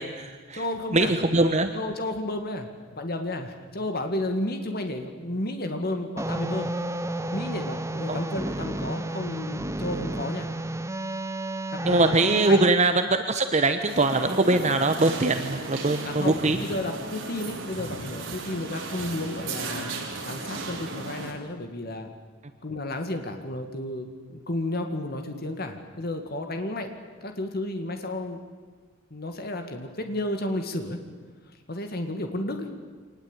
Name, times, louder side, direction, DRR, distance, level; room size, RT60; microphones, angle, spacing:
voice 1, 0.0-0.6 0.9-1.7 8.1-8.2 11.8-16.6, right 2 dB, 35° right, 8 dB, 1.1 m, -22 dB
voice 2, 0.5-1.1 1.7-2.7 3.0-6.7 7.3-10.5 11.7-12.7 16.0-19.9 20.3-22.1 22.6-26.9 27.2-28.4 29.1-31.0 31.7-32.7, left 1 dB, 50° left, 6 dB, 2.1 m, -32 dB
sound 1, 6.2-12.7, right 1 dB, 15° right, 0.7 m, -31 dB
sound 2, 13.9-21.3, right 3 dB, 70° right, 4.4 m, -35 dB
25.5 x 19.5 x 9.0 m, 1.4 s
head